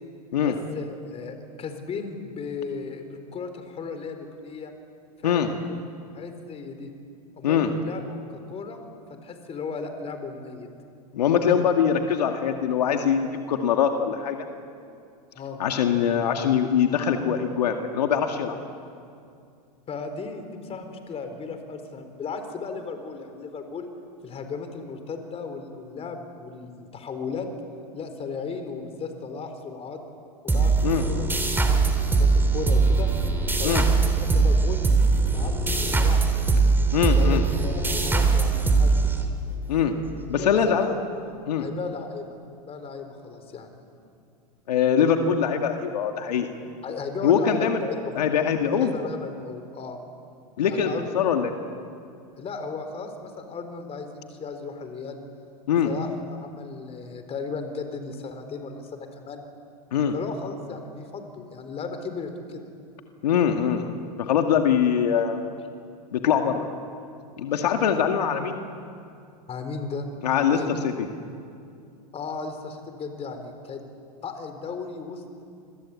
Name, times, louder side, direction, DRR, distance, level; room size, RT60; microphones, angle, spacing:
voice 1, 0.4-4.7 5.2-5.6 6.1-6.9 7.3-8.8 9.2-10.7 15.3-15.6 19.9-23.9 24.2-27.5 27.9-30.0 30.4-30.7 31.0-33.1 33.6-34.9 35.2-36.5 36.9-39.2 40.4-42.2 42.6-43.8 46.8-48.2 48.8-50.0 50.7-51.2 52.4-55.2 55.8-59.5 60.1-62.6 69.5-70.1 70.5-70.7 72.1-73.8 74.2-75.4, left 4 dB, 30° left, 7 dB, 4.2 m, -35 dB
voice 2, 11.1-14.5 15.6-18.6 30.8-31.0 33.6-33.8 36.9-37.4 39.7-40.0 40.3-40.9 41.5-41.7 44.7-46.5 47.2-47.8 48.2-48.9 50.6-51.5 55.7-55.9 59.9-60.1 63.2-64.0 64.3-65.4 66.1-66.6 67.4-68.6 70.2-71.1, left 8 dB, 80° left, 5 dB, 2.1 m, -23 dB
sound 1, 30.5-39.7, right 4 dB, 10° right, 3.5 m, -21 dB
28.5 x 22.0 x 8.6 m, 2.4 s
hypercardioid pair, 105°, 20 cm